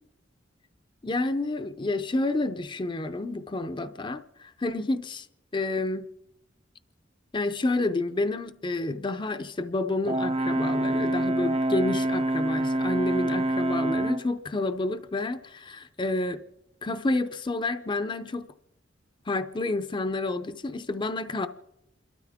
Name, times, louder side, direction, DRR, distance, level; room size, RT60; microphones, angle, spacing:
voice 1, 1.0-5.3 5.5-6.1 7.3-16.4 16.8-18.5 19.3-21.5, left 2 dB, 25° left, 0.6 m, -29 dB
Brass instrument, 10.0-14.3, right 1 dB, 30° right, 0.5 m, -26 dB
29.0 x 13.0 x 3.6 m
head